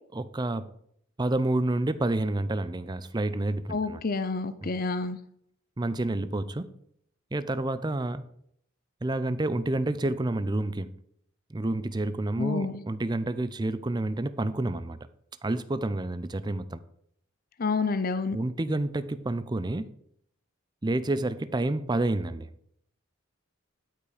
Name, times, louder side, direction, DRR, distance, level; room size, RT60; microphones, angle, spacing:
voice 1, 0.1-0.7 1.2-4.0 4.6-4.7 5.8-6.7 7.3-8.2 9.0-11.0 11.5-15.0 15.4-16.8 18.3-19.9 20.8-22.5, right 2 dB, 20° right, 0.5 m, -29 dB
voice 2, 3.7-5.2 12.4-12.8 17.6-18.4, left 4 dB, 40° left, 0.6 m, -29 dB
12.5 x 5.7 x 5.0 m
head